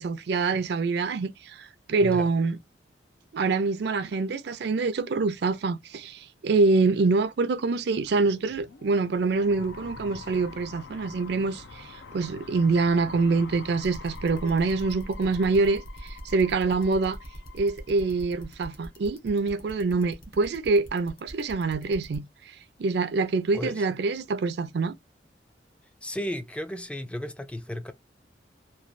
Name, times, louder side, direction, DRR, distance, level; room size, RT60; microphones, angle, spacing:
voice 1, 0.0-2.6 3.3-17.2 17.5-22.2 22.8-24.9, right 3 dB, 65° right, 0.4 m, -25 dB
sound 1, 7.7-18.7, left 4 dB, 90° left, 0.6 m, -46 dB
sound 2, 13.8-22.2, equal, 55° left, 0.9 m, -44 dB
voice 2, 23.5-23.9 26.0-27.9, equal, 5° left, 0.3 m, -34 dB
3.0 x 2.3 x 2.4 m
head